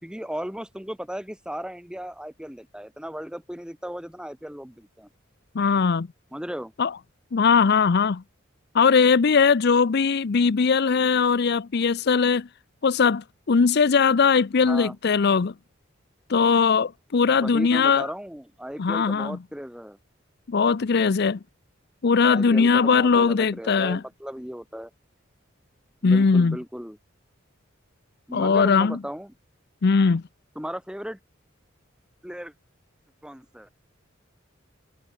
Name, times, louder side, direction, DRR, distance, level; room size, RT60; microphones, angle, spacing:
voice 1, 0.0-5.1 6.3-6.7 14.6-14.9 17.2-20.0 22.3-24.9 26.0-27.0 28.3-29.3 30.5-31.2 32.2-32.5 33.2-33.7, equal, 5° right, 2.9 m, -36 dB
voice 2, 5.5-6.1 6.8-6.9 7.3-8.2 8.7-12.5 12.8-15.5 16.3-18.1 18.8-19.4 20.5-21.4 22.0-24.0 26.0-26.6 28.3-29.0 29.8-30.2, left 5 dB, 55° left, 0.5 m, -20 dB
head